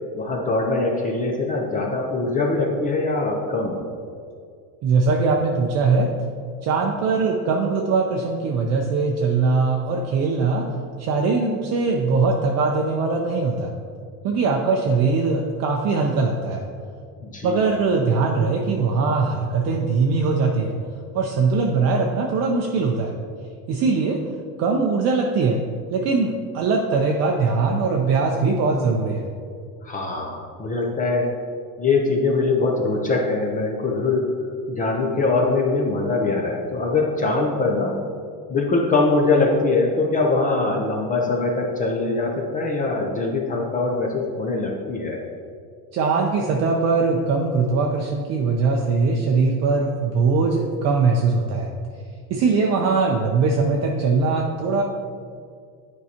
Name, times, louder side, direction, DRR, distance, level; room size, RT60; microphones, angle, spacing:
voice 1, 0.1-3.9 17.2-17.7 29.8-31.3 31.8-34.3 34.7-38.0 38.5-45.2, left 3 dB, 20° left, 0 dB, 0.4 m, -22 dB
voice 2, 4.8-6.1 6.6-10.7 11.0-13.7 14.2-16.7 17.4-20.7 21.1-23.1 23.7-24.2 24.6-25.6 25.9-29.3 45.9-51.7 52.3-54.8, right 4 dB, 35° right, 0 dB, 0.5 m, -21 dB
9.4 x 4.7 x 2.8 m, 2.2 s
supercardioid pair, 140°, 47 cm